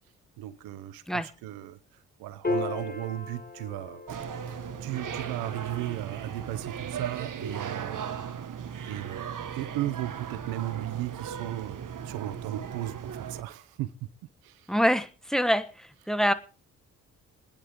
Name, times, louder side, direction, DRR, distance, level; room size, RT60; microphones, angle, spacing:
voice 1, 0.4-1.8 2.2-4.0 4.4-13.9 14.4-14.6, right 14 dB, 90° right, 0.9 m, -36 dB
Piano, 2.4-9.1, left 3 dB, 25° left, 4.3 m, -38 dB
sound 1, 4.1-13.4, right 8 dB, 60° right, 1.7 m, -37 dB
voice 2, 14.7-15.7 16.1-16.3, equal, ahead, 1.3 m, -24 dB
27.0 x 10.0 x 3.7 m
supercardioid pair, 50°, 35 cm